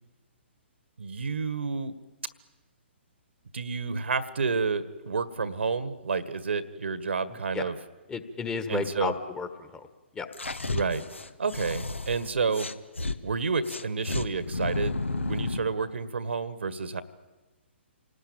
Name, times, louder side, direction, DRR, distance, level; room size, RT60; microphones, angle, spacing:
voice 1, 1.0-1.9 3.5-7.8 8.7-9.1 10.7-11.0 11.4-12.7 13.2-15.0 15.3-17.0, right 4 dB, 70° right, 14 dB, 1.7 m, -30 dB
voice 2, 8.1-9.8 10.1-10.3, left 4 dB, 10° left, 10 dB, 1.5 m, -32 dB
sound 1, 10.3-13.2 13.6-15.7, left 3 dB, 80° left, 1.4 m, -32 dB
28.0 x 19.0 x 9.0 m, 1.2 s
figure-of-eight pair, 130°, 7 cm